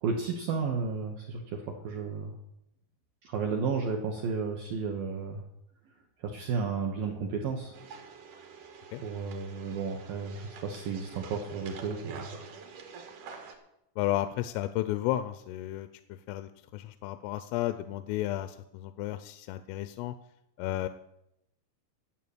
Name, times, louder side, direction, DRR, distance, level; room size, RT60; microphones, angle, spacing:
voice 1, 0.0-2.4 3.2-5.4 6.2-7.7 9.0-12.4, right 5 dB, 80° right, 2 dB, 2.0 m, -33 dB
sound 1, 7.7-13.6, right 5 dB, 60° right, 2.2 m, -46 dB
voice 2, 14.0-20.2 20.6-20.9, left 14 dB, 85° left, 11 dB, 3.1 m, -33 dB
12.0 x 7.3 x 8.5 m, 0.84 s
omnidirectional pair, 5.6 m